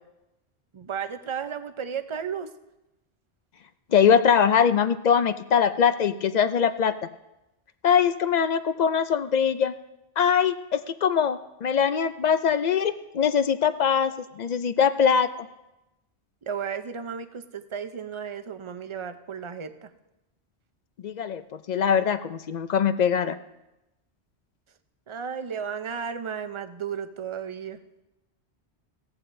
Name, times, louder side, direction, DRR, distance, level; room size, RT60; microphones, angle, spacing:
voice 1, 0.7-2.5 16.4-19.9 25.1-27.8, right 7 dB, 35° right, 9 dB, 0.5 m, -34 dB
voice 2, 3.9-6.9 7.8-9.7 10.2-15.3 21.0-23.3, left 7 dB, 55° left, 11 dB, 0.5 m, -22 dB
17.0 x 14.0 x 2.6 m, 0.97 s
omnidirectional pair, 1.1 m